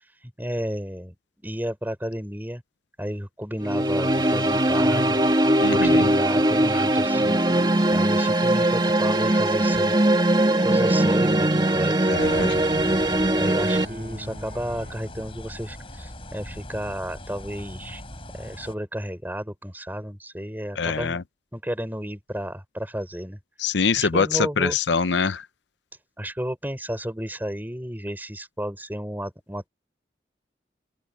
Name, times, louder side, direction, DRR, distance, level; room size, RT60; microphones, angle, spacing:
voice 1, 0.4-1.1 1.4-2.6 3.0-5.2 5.7-7.4 7.9-10.0 10.6-12.6 13.3-18.0 18.3-21.2 21.5-23.4 24.0-24.8 26.2-29.7, equal, 10° right, 6.0 m, -32 dB
sound 1, 3.6-13.8, right 1 dB, 25° right, 2.3 m, -21 dB
voice 2, 5.6-6.1 12.1-12.6 20.8-21.2 23.6-25.4, left 5 dB, 90° left, 0.7 m, -24 dB
Bowed string instrument, 9.9-15.7, right 1 dB, 50° right, 7.4 m, -42 dB
sound 2, 12.2-18.7, left 1 dB, 30° left, 4.9 m, -40 dB
open air
head